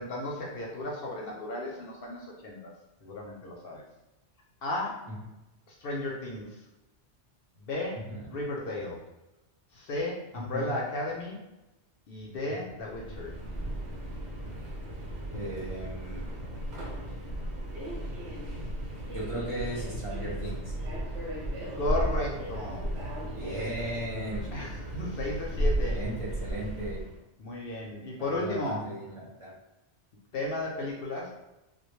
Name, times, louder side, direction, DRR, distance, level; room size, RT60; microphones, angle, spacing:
voice 1, 0.0-2.7 3.0-3.8 4.6-5.1 5.8-6.6 7.6-9.0 9.7-11.4 12.1-13.3 21.8-22.8 24.5-26.0 27.4-28.9 30.3-31.3, left 2 dB, 65° left, -2 dB, 0.7 m, -34 dB
voice 2, 10.3-10.7 12.5-12.8 15.3-16.3 19.1-20.7 23.3-24.7 25.8-27.0 28.2-29.5, right 1 dB, 40° right, -8 dB, 0.5 m, -37 dB
Subway metro underground, 12.8-27.2, right 1 dB, 75° right, 0.9 m, -35 dB
2.2 x 2.1 x 3.0 m, 0.96 s
omnidirectional pair, 1.2 m